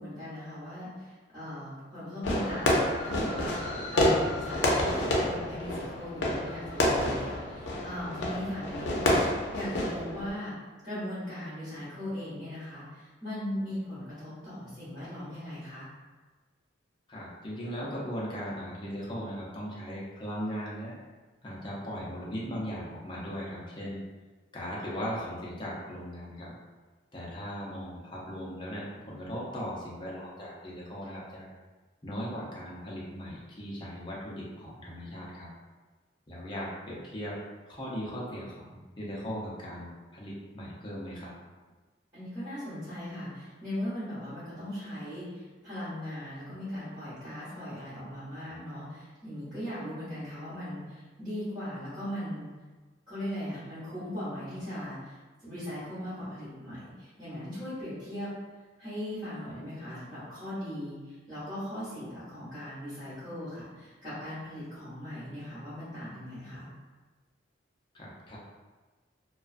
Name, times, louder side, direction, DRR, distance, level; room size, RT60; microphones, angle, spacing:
voice 1, 0.0-10.5 10.8-15.9 42.1-52.5 53.1-55.1 55.4-58.3 58.8-66.7, equal, 20° right, -16 dB, 1.1 m, -39 dB
Fireworks, 2.2-10.3, left 1 dB, 80° left, 0.5 m, -28 dB
voice 2, 17.1-20.9 21.4-24.0 24.5-26.5 27.1-31.5 32.0-35.5 36.3-37.4 37.7-41.3 67.9-68.4, equal, 25° left, -6 dB, 0.5 m, -38 dB
2.3 x 2.3 x 2.4 m, 1.3 s
head